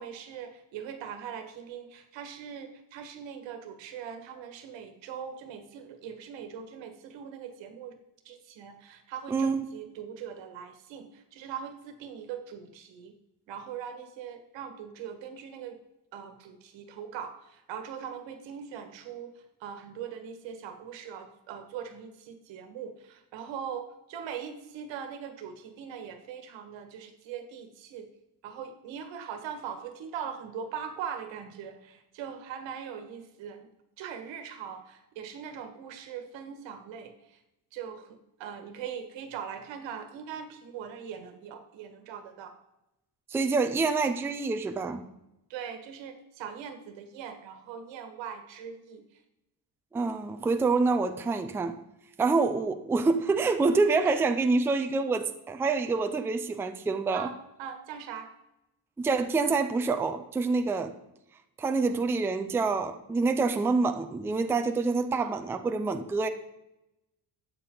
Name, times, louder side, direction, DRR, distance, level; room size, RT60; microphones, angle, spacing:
voice 1, 0.0-7.9 8.3-13.1 13.5-15.8 16.1-28.1 28.4-33.7 34.0-37.4 37.7-42.5 45.5-49.0 54.0-54.2 57.1-58.3 65.2-65.4, right 8 dB, 85° right, 7 dB, 1.7 m, -41 dB
voice 2, 9.3-9.6 43.3-45.1 49.9-51.8 52.2-57.3 59.0-60.9 61.6-66.3, right 4 dB, 5° right, 8 dB, 0.3 m, -27 dB
12.5 x 8.6 x 3.8 m, 0.89 s
cardioid pair, 175°, 43 cm